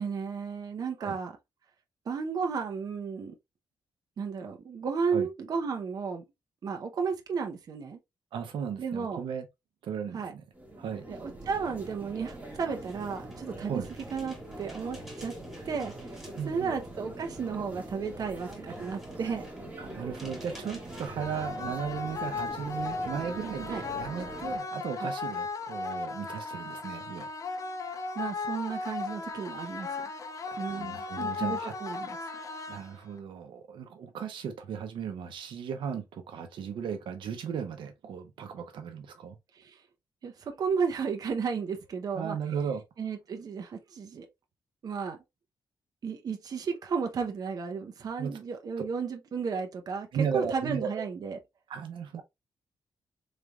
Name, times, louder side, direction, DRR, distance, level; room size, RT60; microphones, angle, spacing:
voice 1, 0.0-1.4 2.1-3.4 4.2-6.2 6.6-8.0 8.8-9.2 10.1-10.3 11.1-13.8 14.1-15.3 15.6-19.5 23.7-23.8 25.0-25.1 28.1-29.9 30.6-32.2 39.5-39.8 40.2-42.4 43.0-44.3 44.8-45.2 46.0-50.1 50.3-51.4, right 5 dB, 50° right, 0.8 m, -33 dB
voice 2, 8.3-9.5 9.8-10.4 10.8-11.0 13.6-13.9 16.3-16.7 19.8-27.3 30.4-31.7 32.7-39.4 42.1-42.8 48.2-48.4 50.1-50.9 51.7-52.2, right 7 dB, 85° right, 0.8 m, -36 dB
sound 1, 10.5-24.6, right 1 dB, 20° right, 1.7 m, -43 dB
sound 2, 11.6-21.1, equal, ahead, 2.0 m, -55 dB
sound 3, 21.2-33.2, left 4 dB, 45° left, 0.6 m, -36 dB
4.1 x 3.3 x 2.3 m
wide cardioid pair, 135°, 8 cm